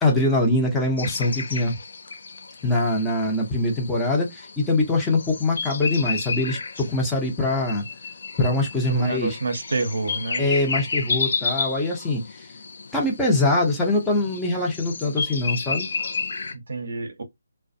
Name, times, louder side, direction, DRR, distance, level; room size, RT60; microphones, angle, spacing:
voice 1, 0.0-1.7 2.6-7.8 8.4-9.4 10.4-12.5 12.9-15.9, left 2 dB, 5° left, 0.8 m, -23 dB
sound 1, 1.0-16.5, left 4 dB, 55° left, 0.4 m, -32 dB
voice 2, 8.9-10.4 16.5-17.2, right 3 dB, 65° right, 0.7 m, -28 dB
2.3 x 2.2 x 2.6 m
figure-of-eight pair, 150°, 0 cm